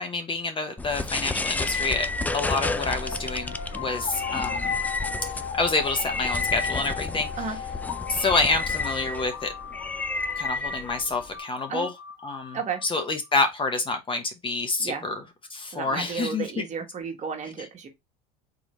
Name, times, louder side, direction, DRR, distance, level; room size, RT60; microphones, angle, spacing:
voice 1, 0.0-2.1 2.3-4.7 5.6-7.3 8.1-9.5 10.4-11.9 12.2-15.2 15.5-16.4, left 3 dB, 25° left, 0.8 m, -27 dB
sound 1, 0.8-11.4, left 3 dB, 10° left, 0.3 m, -31 dB
sound 2, 2.1-13.1, left 7 dB, 60° left, 1.0 m, -37 dB
voice 2, 12.5-12.8 14.8-15.0 15.7-17.9, right 6 dB, 35° right, 1.4 m, -33 dB
3.9 x 3.1 x 3.1 m
supercardioid pair, 100°, 21 cm